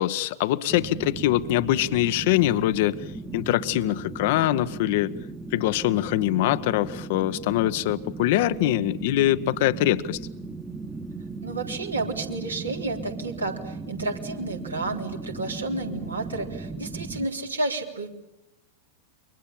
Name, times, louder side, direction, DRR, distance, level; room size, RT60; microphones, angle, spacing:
voice 1, 0.0-3.0 3.3-5.1 5.5-10.2, left 14 dB, 50° left, 13 dB, 1.1 m, -23 dB
sound 1, 0.7-17.3, right 3 dB, 10° right, 1.4 m, -37 dB
voice 2, 11.4-18.1, right 2 dB, 80° right, 2 dB, 3.7 m, -31 dB
28.5 x 24.5 x 7.4 m, 0.88 s
figure-of-eight pair, 90°, 0 cm